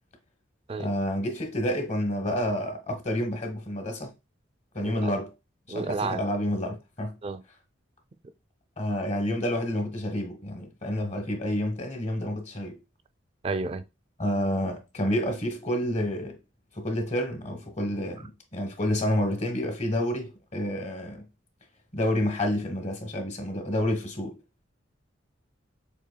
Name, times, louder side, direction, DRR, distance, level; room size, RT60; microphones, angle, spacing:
voice 1, 0.8-4.1 4.7-5.3 5.7-7.2 8.8-12.8 14.2-16.4 16.7-21.3 21.9-24.4, left 1 dB, 35° left, 1.1 m, -29 dB
voice 2, 4.8-5.1 5.7-6.2 7.2-7.4 13.4-13.9, right 3 dB, 30° right, 0.4 m, -31 dB
6.7 x 2.7 x 2.2 m
head